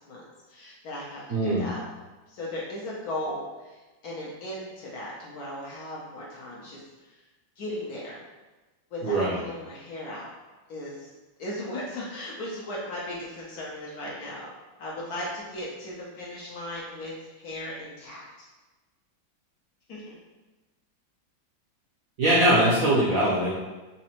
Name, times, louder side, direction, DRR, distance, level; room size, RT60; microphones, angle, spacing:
voice 1, 0.1-1.8 2.3-7.2 7.6-8.2 8.9-10.3 10.7-11.1 11.4-14.5 14.8-18.5 19.9-20.2, left 1 dB, 65° left, -5 dB, 1.0 m, -37 dB
voice 2, 1.3-1.7 9.0-9.4 22.2-23.5, right 1 dB, 65° right, -8 dB, 0.8 m, -22 dB
4.1 x 2.6 x 2.9 m, 1.2 s
omnidirectional pair, 2.1 m